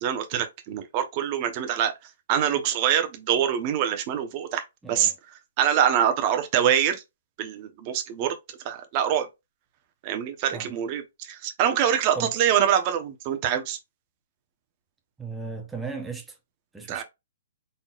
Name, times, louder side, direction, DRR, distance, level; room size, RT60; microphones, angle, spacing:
voice 1, 0.0-1.9 2.3-5.1 5.6-7.0 7.4-8.4 8.6-9.3 10.0-13.8 16.9-17.0, right 9 dB, 30° right, 0.9 m, -24 dB
voice 2, 4.8-5.1 10.5-10.7 12.1-12.3 15.2-16.4 16.7-17.0, right 4 dB, 5° right, 0.9 m, -36 dB
4.0 x 3.9 x 2.4 m
hypercardioid pair, 160°, 0 cm